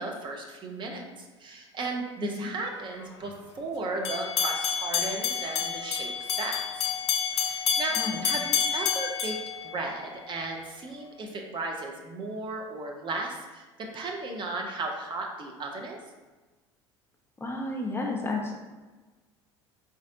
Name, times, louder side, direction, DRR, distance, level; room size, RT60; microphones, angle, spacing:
voice 1, 0.0-6.9 7.3-9.4 9.6-16.0, right 3 dB, 35° right, 1 dB, 0.7 m, -35 dB
sound 1, 4.0-10.3, left 7 dB, 70° left, 0.5 m, -29 dB
voice 2, 17.4-18.5, left 2 dB, 15° left, 0 dB, 0.7 m, -31 dB
4.2 x 3.7 x 2.6 m, 1.2 s
figure-of-eight pair, 70°, 15 cm